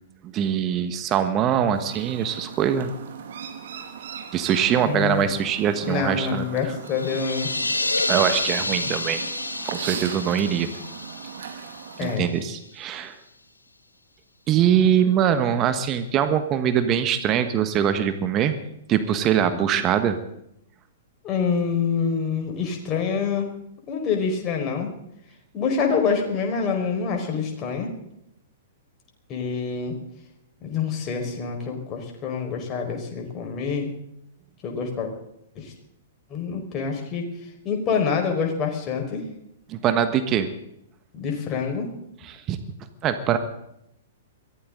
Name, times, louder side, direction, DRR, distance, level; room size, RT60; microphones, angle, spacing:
voice 1, 0.3-2.9 4.3-6.4 8.1-9.2 9.6-10.7 12.0-13.1 14.5-18.6 18.9-20.2 39.7-40.5 42.3-42.6 43.0-43.4, right 9 dB, 30° right, 10 dB, 1.4 m, -22 dB
Chirp tweet, 1.7-12.1, right 7 dB, 55° right, 2.6 m, -39 dB
voice 2, 4.8-5.3 5.8-7.5 8.7-8.9 12.0-12.4 21.2-23.5 23.9-24.9 25.5-27.9 29.3-30.0 30.6-33.9 34.6-35.1 35.5-35.7 36.3-37.3 37.6-39.2 41.1-41.9, left 6 dB, 30° left, 2 dB, 4.9 m, -26 dB
sound 1, 6.9-12.5, left 2 dB, 85° left, 1.4 m, -29 dB
23.0 x 16.0 x 3.9 m, 0.77 s
figure-of-eight pair, 110°, 0 cm